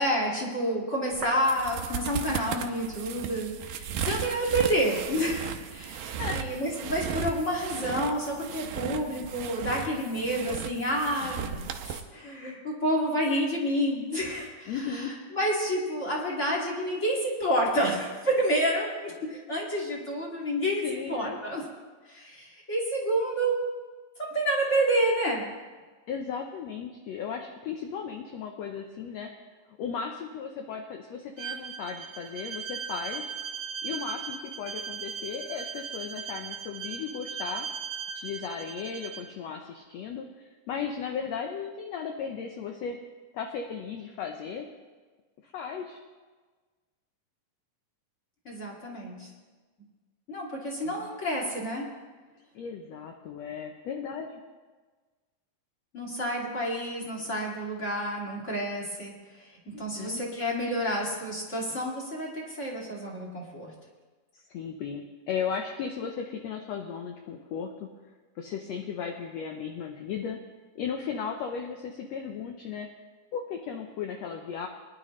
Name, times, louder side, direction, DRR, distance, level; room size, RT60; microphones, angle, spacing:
voice 1, 0.0-11.5 11.9-21.6 22.1-23.6 24.2-25.5 48.4-49.3 50.3-51.9 55.9-59.1 59.6-63.7, equal, 25° left, -3 dB, 2.1 m, -29 dB
sound 1, 1.1-12.0, right 8 dB, 85° right, 2.4 m, -36 dB
voice 2, 11.2-11.7 14.7-15.2 20.8-21.4 26.1-29.3 29.8-33.3 33.8-37.7 38.1-43.0 43.3-44.7 45.4-46.0 50.8-51.1 52.5-54.4 59.9-60.2 64.5-67.9 68.4-70.4 70.7-72.9 73.3-74.7, left 6 dB, 70° left, 3 dB, 1.7 m, -36 dB
Bowed string instrument, 31.4-39.3, right 6 dB, 60° right, 1.3 m, -38 dB
21.5 x 11.0 x 3.2 m, 1.4 s
omnidirectional pair, 3.8 m